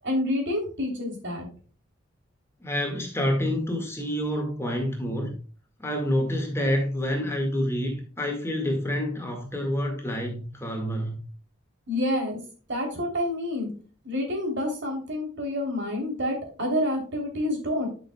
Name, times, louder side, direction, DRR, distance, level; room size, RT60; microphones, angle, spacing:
voice 1, 0.0-1.5 11.9-12.4 12.7-13.7 14.0-17.9, left 1 dB, 60° right, 2 dB, 3.4 m, -28 dB
voice 2, 2.6-5.3 5.8-11.2, equal, 15° left, 1 dB, 1.9 m, -28 dB
11.5 x 6.3 x 2.3 m, 0.38 s
head